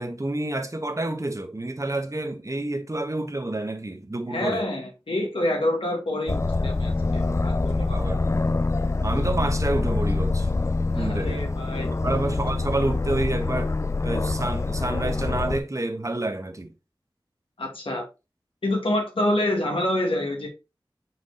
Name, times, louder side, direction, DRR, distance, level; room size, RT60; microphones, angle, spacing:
voice 1, 0.0-4.7 7.8-8.2 9.0-10.5 11.0-11.5 12.0-13.7 14.0-16.7, right 2 dB, 35° right, 1.2 m, -28 dB
voice 2, 4.3-8.0 10.9-11.9 17.6-18.0 18.6-20.5, left 1 dB, 85° left, 2.0 m, -27 dB
Aircraft, 6.3-15.6, left 3 dB, 35° left, 0.4 m, -25 dB
6.1 x 4.8 x 3.9 m
wide cardioid pair, 55°, 9 cm